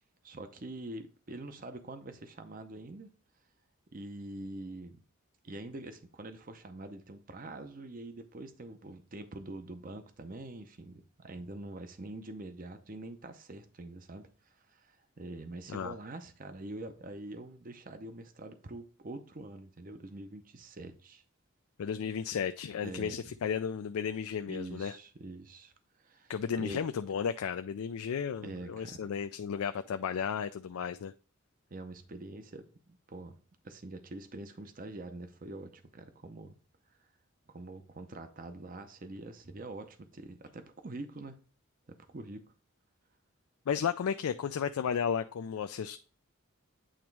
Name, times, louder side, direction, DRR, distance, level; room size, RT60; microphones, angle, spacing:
voice 1, 0.2-3.1 3.9-5.0 5.4-21.2 22.8-23.2 24.5-26.3 26.6-26.9 28.4-29.1 31.7-33.4 33.6-36.6 37.5-41.4 41.9-42.5, right 2 dB, 40° right, 0.6 m, -45 dB
voice 2, 21.8-24.9 26.3-31.1 43.7-46.0, left 7 dB, 85° left, 0.4 m, -34 dB
8.8 x 3.0 x 4.6 m
head